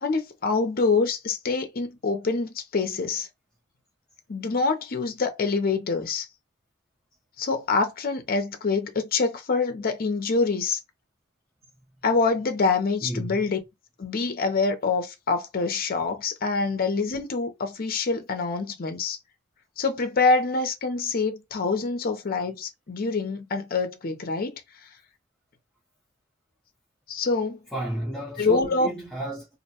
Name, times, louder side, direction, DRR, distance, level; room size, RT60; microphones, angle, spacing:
voice 1, 0.0-3.3 4.3-6.3 7.4-10.8 12.0-13.6 14.0-19.2 19.8-24.6 27.1-27.6 28.4-28.9, left 4 dB, 45° left, 0.5 m, -25 dB
voice 2, 13.0-13.4 27.7-29.5, right 1 dB, 5° left, 0.7 m, -32 dB
2.5 x 2.1 x 2.7 m
head